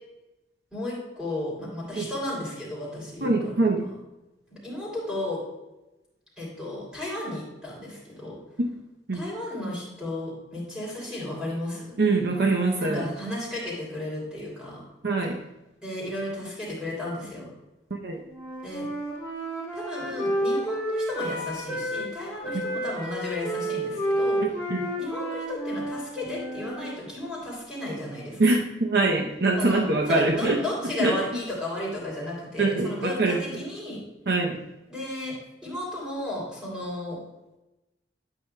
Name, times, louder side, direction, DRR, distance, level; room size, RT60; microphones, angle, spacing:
voice 1, 0.7-3.6 4.5-5.4 6.4-8.4 9.1-12.0 12.8-14.8 15.8-17.5 18.6-18.8 19.7-24.4 25.0-28.4 29.6-34.0 34.9-35.3 35.6-37.2, left 1 dB, 5° right, -5 dB, 2.9 m, -34 dB
voice 2, 3.2-3.9 9.1-9.2 12.0-13.1 15.0-15.4 17.9-18.2 24.4-24.9 28.4-30.6 31.0-31.1 32.6-33.6 34.3-34.6, right 3 dB, 60° right, 1 dB, 0.7 m, -24 dB
Wind instrument woodwind instrument, 18.3-22.1 22.4-26.9, right 1 dB, 10° left, 2.1 m, -30 dB
9.0 x 8.6 x 2.2 m, 0.98 s
head